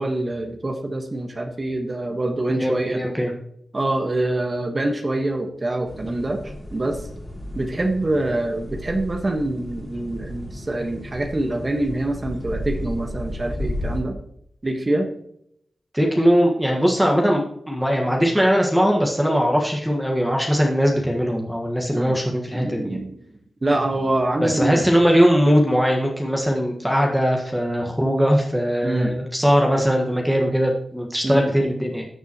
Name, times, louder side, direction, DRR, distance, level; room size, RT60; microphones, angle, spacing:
voice 1, 0.0-3.0 3.7-6.4 6.7-7.0 7.5-14.2 14.6-15.1 21.9-22.2 22.5-23.2 23.6-24.9 28.8-29.1 31.2-31.4, right 1 dB, 35° right, 4 dB, 1.4 m, -25 dB
voice 2, 2.6-3.3 15.9-23.0 24.4-32.0, equal, 5° right, 0 dB, 1.6 m, -20 dB
sound 1, 5.8-14.0, left 1 dB, 20° left, 2.8 m, -33 dB
14.0 x 7.1 x 3.0 m, 0.73 s
cardioid pair, 70°, 0 cm